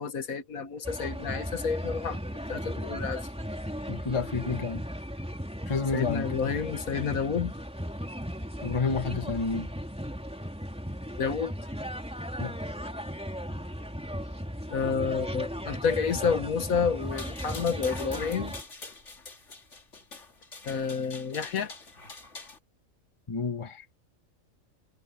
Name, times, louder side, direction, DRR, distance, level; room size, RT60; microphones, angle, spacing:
voice 1, 0.0-2.2 2.5-3.3 5.9-7.5 11.2-11.5 14.7-18.5 20.7-21.7, left 6 dB, 85° left, 1.9 m, -29 dB
sound 1, 0.8-18.6, equal, 5° right, 3.3 m, -36 dB
voice 2, 3.9-4.8 5.7-6.5 8.6-9.7 12.4-12.6 23.3-23.8, left 4 dB, 25° left, 1.2 m, -30 dB
sound 2, 17.0-22.6, left 3 dB, 60° left, 2.9 m, -44 dB
omnidirectional pair, 1.4 m